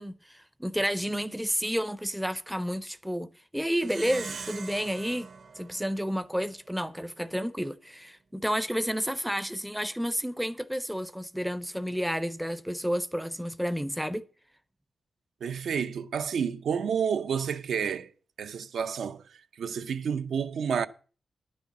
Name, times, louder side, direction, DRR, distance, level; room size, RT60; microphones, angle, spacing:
voice 1, 0.0-5.3 5.6-14.2, equal, ahead, 0.4 m, -31 dB
Plucked string instrument, 3.8-6.6, right 5 dB, 50° right, 0.7 m, -42 dB
voice 2, 15.4-18.1 18.4-20.9, right 7 dB, 85° right, 0.6 m, -30 dB
10.5 x 6.4 x 7.0 m
wide cardioid pair, 175°, 0 cm